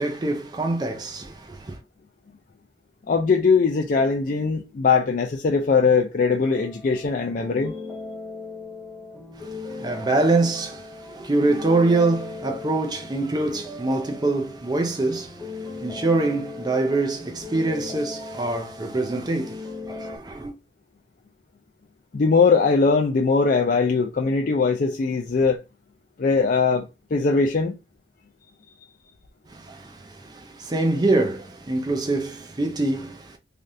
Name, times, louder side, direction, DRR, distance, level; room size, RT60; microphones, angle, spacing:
voice 1, 0.0-1.8 9.4-20.5 29.5-33.4, right 2 dB, 25° right, 0.4 m, -25 dB
voice 2, 3.1-7.7 22.1-25.6 26.2-27.7, left 4 dB, 45° left, 0.4 m, -20 dB
sound 1, 6.5-20.2, left 3 dB, ahead, 0.8 m, -38 dB
3.3 x 2.4 x 2.6 m
head